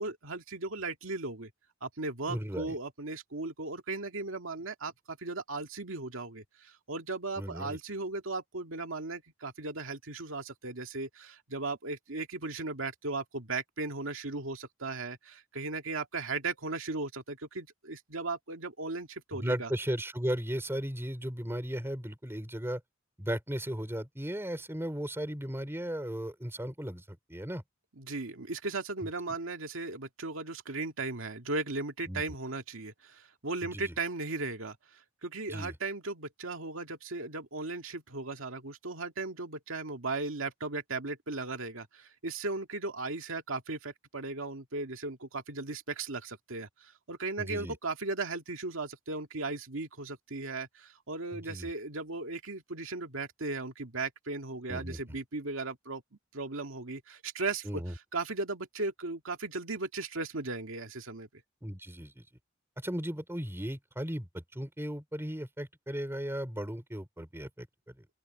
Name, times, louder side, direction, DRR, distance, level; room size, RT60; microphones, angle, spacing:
voice 1, 0.0-1.5 1.8-19.7 28.0-56.0 56.3-57.8 58.1-61.3, right 3 dB, 90° right, 2.1 m, -37 dB
voice 2, 2.3-2.8 7.4-7.8 19.3-22.8 23.2-27.6 29.0-29.1 32.1-32.2 33.6-33.9 35.5-35.7 47.4-47.8 51.3-51.7 54.7-55.2 57.6-57.9 61.6-62.3 62.8-68.1, equal, 10° right, 3.9 m, -36 dB
open air
head